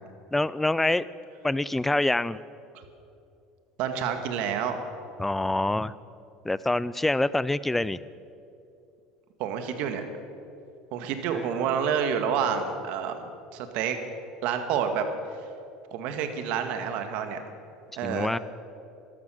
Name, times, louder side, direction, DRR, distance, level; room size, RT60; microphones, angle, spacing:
voice 1, 0.3-1.1 1.4-2.4 5.2-5.9 6.4-8.0 11.3-11.8 18.0-18.4, left 2 dB, 10° left, 18 dB, 0.4 m, -26 dB
voice 2, 3.8-4.8 9.4-10.0 10.9-14.0 14.4-15.1 15.9-17.4 18.0-18.3, right 7 dB, 65° right, 7 dB, 1.7 m, -28 dB
13.5 x 13.0 x 6.4 m, 2.6 s
supercardioid pair, 100°, 2 cm